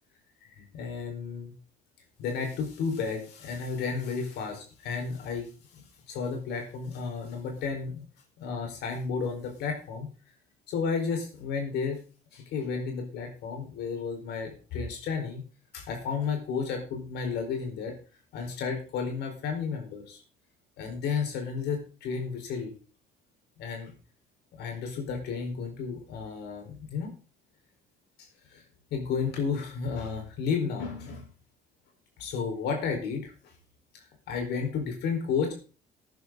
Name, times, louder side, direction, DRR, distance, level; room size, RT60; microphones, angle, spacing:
voice 1, 0.6-1.5 2.2-5.5 5.7-5.8 6.1-8.0 8.4-10.1 10.7-12.0 12.3-15.4 15.7-17.9 18.3-20.2 20.8-22.7 23.6-23.9 24.6-27.1 28.5-28.6 28.9-31.2 32.2-33.3 33.9-35.5, left 5 dB, 80° left, 3 dB, 4.6 m, -32 dB
13.5 x 10.5 x 3.9 m, 0.37 s
cardioid pair, 110°, 17 cm